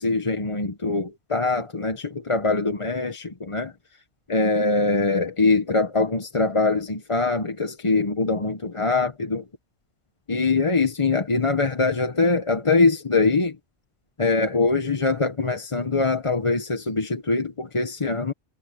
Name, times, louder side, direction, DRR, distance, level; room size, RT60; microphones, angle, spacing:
voice 1, 0.0-3.7 4.3-9.4 10.3-13.6 14.2-18.3, left 3 dB, 25° left, 1.0 m, -23 dB
omnidirectional pair, 1.3 m